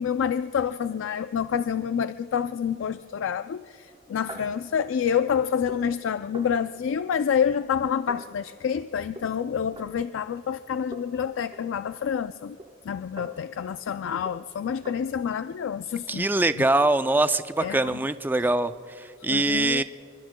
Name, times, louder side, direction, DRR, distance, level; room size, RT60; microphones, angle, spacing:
voice 1, 0.0-12.6 12.9-16.3 16.6-16.7 17.6-17.9 19.3-19.8, left 7 dB, 80° left, 11 dB, 0.3 m, -28 dB
sound 1, 3.9-10.7 10.9-15.0, right 1 dB, 25° right, 0.9 m, -48 dB
voice 2, 16.1-19.8, right 2 dB, 10° right, 11 dB, 0.3 m, -23 dB
27.0 x 24.0 x 2.2 m, 2.7 s
head